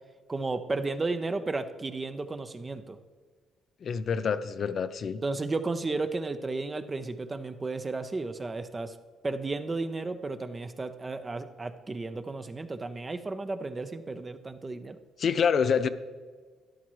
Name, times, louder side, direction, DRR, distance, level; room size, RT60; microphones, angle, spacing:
voice 1, 0.3-3.0 5.2-9.0 9.2-15.0, right 3 dB, 25° right, 9 dB, 0.7 m, -33 dB
voice 2, 3.8-5.2 15.2-15.9, left 6 dB, 55° left, 11 dB, 0.5 m, -26 dB
12.5 x 11.0 x 3.2 m, 1.5 s
cardioid pair, 90°, 0 cm